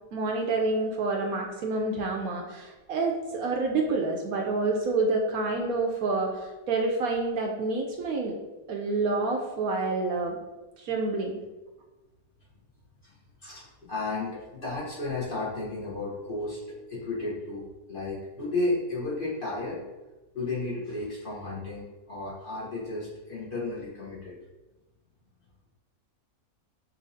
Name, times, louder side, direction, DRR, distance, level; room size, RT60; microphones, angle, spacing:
voice 1, 0.1-8.3 8.7-10.4 10.8-11.4, right 3 dB, 70° right, 1 dB, 1.0 m, -28 dB
voice 2, 13.0-19.8 20.3-24.4, left 2 dB, 40° left, -7 dB, 1.1 m, -33 dB
6.8 x 2.7 x 2.7 m, 1.1 s
omnidirectional pair, 1.7 m